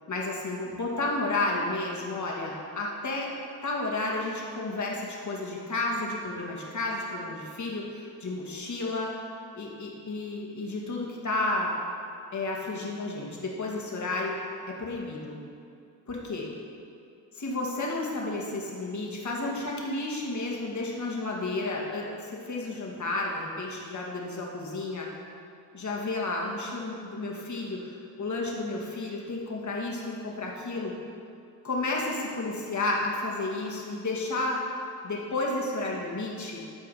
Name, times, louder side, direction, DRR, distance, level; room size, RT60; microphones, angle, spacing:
voice 1, 0.1-3.3 3.6-9.2 9.5-11.7 12.3-14.4 14.7-15.4 16.1-16.5 17.4-25.1 25.7-30.9 31.6-34.6 35.0-36.6, left 2 dB, 40° left, -2 dB, 2.2 m, -32 dB
11.5 x 4.6 x 5.8 m, 2.5 s
supercardioid pair, 55°, 43 cm